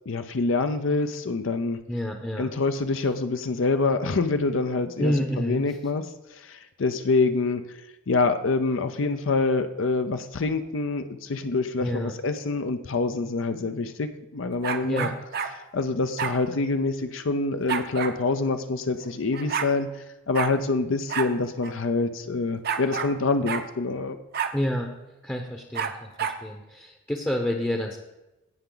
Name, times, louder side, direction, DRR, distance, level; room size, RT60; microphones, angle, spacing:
voice 1, 0.1-1.8 2.4-6.0 6.3-7.6 8.1-15.1 15.7-24.2, left 3 dB, 65° left, 8 dB, 0.6 m, -26 dB
voice 2, 1.9-2.5 5.0-5.6 11.8-12.1 14.8-15.1 24.5-24.9 25.2-28.0, equal, 10° left, 2 dB, 0.8 m, -28 dB
sound 1, 14.6-15.5 16.2-16.4 17.7-18.2 19.0-19.1 19.3-19.7 20.3-20.5 21.1-21.3 21.6-21.7 22.6-23.1 23.5-23.7 24.3-24.6 25.7-26.4, right 6 dB, 50° right, 0.7 m, -29 dB
17.0 x 5.7 x 3.9 m, 1.0 s
head